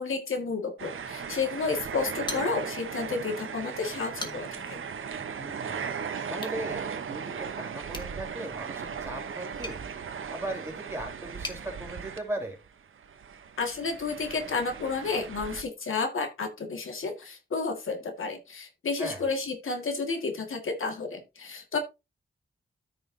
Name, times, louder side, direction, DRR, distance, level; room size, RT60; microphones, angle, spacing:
voice 1, 0.0-4.8 13.6-21.8, left 4 dB, 85° left, 5 dB, 1.8 m, -31 dB
sound 1, 0.8-12.7 13.0-15.6, right 6 dB, 85° right, 0.9 m, -37 dB
sound 2, 2.2-3.0 3.4-3.5 4.0-4.7 6.3-6.6 7.9-11.6, left 2 dB, 20° left, 1.4 m, -42 dB
voice 2, 5.3-5.8 6.3-9.8 10.3-12.6 19.0-19.2, right 1 dB, 10° right, 0 dB, 3.8 m, -38 dB
13.5 x 5.6 x 2.7 m, 0.25 s
wide cardioid pair, 140°, 20 cm